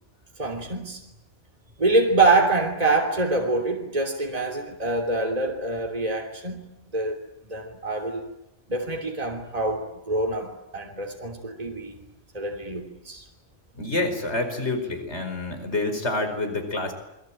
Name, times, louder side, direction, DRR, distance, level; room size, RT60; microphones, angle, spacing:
voice 1, 0.4-1.0 1.8-6.6 6.9-7.2 7.5-8.3 8.7-12.0 12.3-13.2, right 2 dB, 30° right, 2 dB, 3.2 m, -25 dB
voice 2, 13.7-16.9, left 2 dB, 65° left, 6 dB, 5.3 m, -27 dB
29.0 x 23.0 x 9.0 m, 0.86 s
omnidirectional pair, 1.2 m